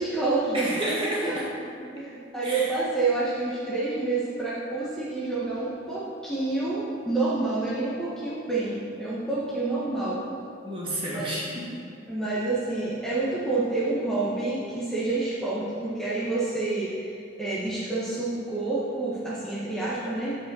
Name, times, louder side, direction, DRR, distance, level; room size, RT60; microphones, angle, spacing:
voice 1, 0.0-0.7 1.2-1.4 1.8-10.2 11.1-11.3 12.1-20.4, right 3 dB, 5° left, -9 dB, 1.1 m, -28 dB
voice 2, 0.5-1.4 2.4-2.7 10.6-11.7, right 1 dB, 25° right, -5 dB, 1.7 m, -30 dB
8.1 x 5.0 x 6.1 m, 2.6 s
head